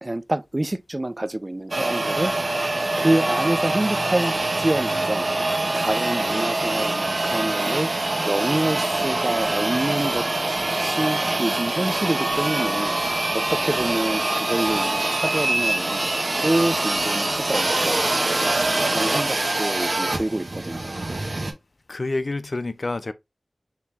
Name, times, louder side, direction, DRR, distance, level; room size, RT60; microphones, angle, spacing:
voice 1, 0.0-2.5 3.0-5.3 5.7-7.9 8.2-10.3 10.8-12.9 13.3-16.1 16.4-18.1 18.6-21.0, right 1 dB, 35° right, 0.4 m, -27 dB
sound 1, 1.7-21.5, right 2 dB, 60° right, 1.1 m, -24 dB
voice 2, 21.9-23.1, left 2 dB, 65° left, 0.4 m, -28 dB
4.4 x 2.9 x 3.5 m
wide cardioid pair, 40°, 0 cm